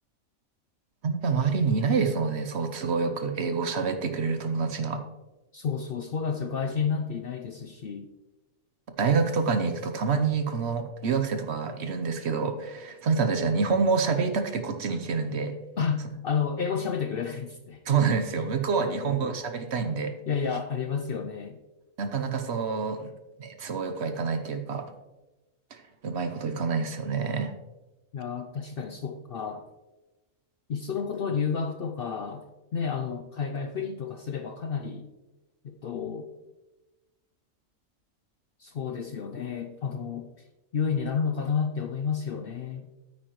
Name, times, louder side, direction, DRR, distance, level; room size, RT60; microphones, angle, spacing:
voice 1, 1.0-5.0 9.0-15.6 17.9-20.1 22.0-23.1 23.4-24.8 25.7-27.5, right 5 dB, 60° right, 7 dB, 1.0 m, -27 dB
voice 2, 5.5-8.1 15.8-17.8 18.8-19.4 20.3-21.6 28.1-29.6 30.7-32.4 32.7-35.1 35.6-36.3 38.6-40.3 40.7-42.9, left 6 dB, 60° left, 6 dB, 0.6 m, -31 dB
9.3 x 8.6 x 3.0 m, 1.1 s
omnidirectional pair, 1.4 m